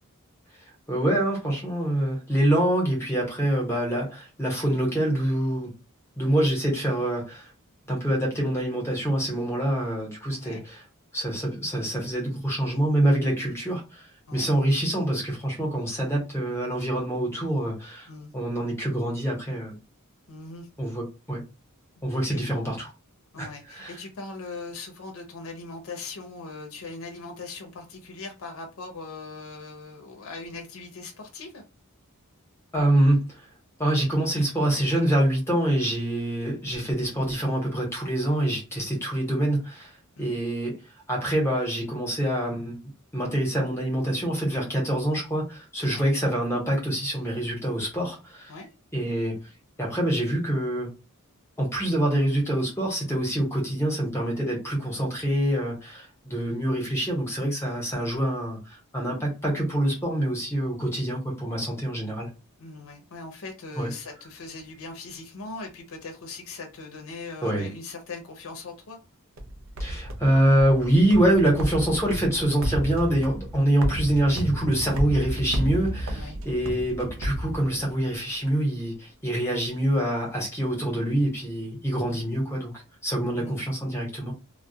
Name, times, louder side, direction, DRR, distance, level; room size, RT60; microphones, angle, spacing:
voice 1, 0.9-5.7 6.2-7.5 7.9-10.8 11.1-14.0 14.3-18.1 18.3-19.8 20.8-21.4 22.0-22.9 23.4-23.9 32.7-33.4 33.8-39.9 40.2-40.8 41.1-42.8 43.1-48.5 48.9-49.4 49.8-50.9 51.6-62.3 63.8-63.9 67.4-67.7 69.8-82.7 83.0-84.3, right 1 dB, 10° left, 0.9 m, -25 dB
voice 2, 10.3-10.6 14.3-14.5 18.1-18.3 20.3-20.7 22.1-22.4 23.3-31.6 40.2-40.3 45.8-46.0 48.5-48.7 62.6-69.0 76.1-76.4 82.1-82.3 83.4-83.6, left 3 dB, 65° left, 0.6 m, -40 dB
sound 1, 69.4-78.2, right 1 dB, 60° right, 0.4 m, -32 dB
2.2 x 2.1 x 2.7 m
head